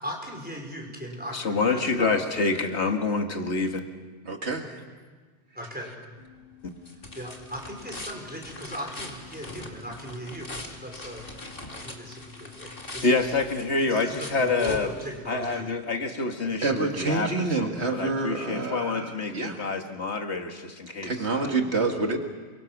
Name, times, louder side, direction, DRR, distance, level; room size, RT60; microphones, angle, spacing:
voice 1, 0.0-2.1 5.5-5.9 7.1-11.3 11.7-13.3 13.9-15.7 16.4-16.8, equal, 10° right, 0 dB, 5.0 m, -38 dB
voice 2, 1.3-3.8 13.0-14.9 15.3-21.5, left 3 dB, 85° left, 5 dB, 2.1 m, -27 dB
voice 3, 4.3-4.8 15.5-15.6 16.6-19.7 21.0-22.2, right 3 dB, 75° right, 3 dB, 2.3 m, -28 dB
sound 1, 6.2-15.6, left 2 dB, 55° left, 2.6 m, -42 dB
28.5 x 23.5 x 6.1 m, 1.4 s
omnidirectional pair, 1.1 m